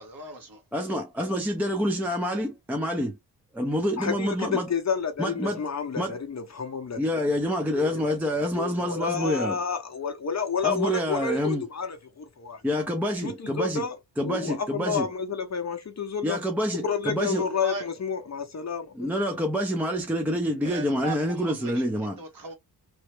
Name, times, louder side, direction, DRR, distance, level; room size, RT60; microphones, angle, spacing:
voice 1, 0.0-0.6 17.3-17.8 20.6-22.5, right 3 dB, 50° right, 1.4 m, -38 dB
voice 2, 0.7-3.2 3.5-4.7 5.2-5.6 6.0-6.2 7.0-9.6 10.6-11.6 12.6-13.8 14.2-15.1 16.2-17.5 18.9-22.2, equal, 5° right, 0.6 m, -27 dB
voice 3, 4.0-7.0 7.7-8.2 8.5-12.6 13.2-16.4 16.8-19.1, left 6 dB, 40° left, 0.8 m, -30 dB
3.1 x 2.1 x 3.1 m
cardioid pair, 85°, 43 cm